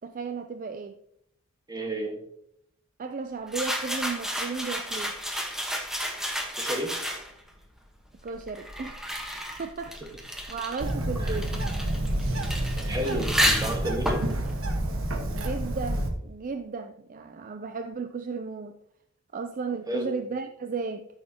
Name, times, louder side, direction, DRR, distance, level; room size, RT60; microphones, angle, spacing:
voice 1, 0.0-1.0 3.0-5.2 8.2-9.1 9.6-10.0 10.5-11.5 15.3-18.8 19.3-21.1, right 4 dB, 40° right, 0.4 m, -34 dB
voice 2, 1.7-2.2 6.6-7.0 11.2-11.4 12.7-14.2 19.9-20.1, right 1 dB, 20° right, 1.5 m, -32 dB
sound 1, 3.5-7.5 8.3-15.7, equal, ahead, 1.2 m, -32 dB
Bird, 10.8-16.1, right 1 dB, 75° right, 1.3 m, -29 dB
13.5 x 6.5 x 2.9 m
head